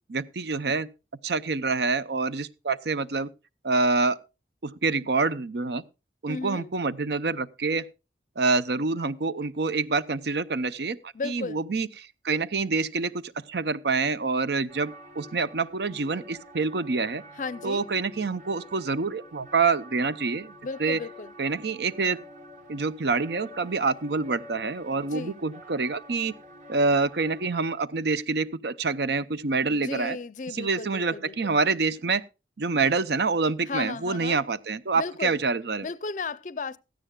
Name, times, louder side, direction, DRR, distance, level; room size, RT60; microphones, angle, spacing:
voice 1, 0.1-0.9 1.2-3.3 3.6-4.2 4.6-5.8 6.2-7.9 8.4-17.2 17.6-20.5 20.8-21.0 21.4-22.2 22.7-26.3 26.7-30.2 30.5-32.2 32.6-35.9, right 4 dB, 65° right, 0.7 m, -26 dB
voice 2, 6.3-6.7 11.1-11.6 17.3-17.9 20.6-21.3 24.9-25.4 29.6-31.6 33.7-34.4 35.0-35.4 35.8-36.8, left 4 dB, 45° left, 0.5 m, -35 dB
sound 1, 14.7-27.5, equal, 45° right, 2.0 m, -47 dB
16.5 x 13.5 x 2.3 m
head